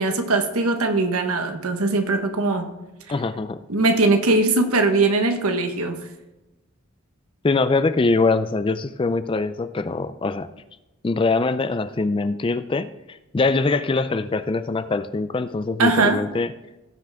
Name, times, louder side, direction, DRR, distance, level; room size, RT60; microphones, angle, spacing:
voice 1, 0.0-2.7 3.7-6.1 15.8-16.2, right 3 dB, 80° right, 6 dB, 1.2 m, -20 dB
voice 2, 3.1-3.6 7.4-10.5 11.0-16.5, left 3 dB, 25° left, 13 dB, 0.3 m, -23 dB
17.0 x 5.9 x 3.5 m, 1.0 s
head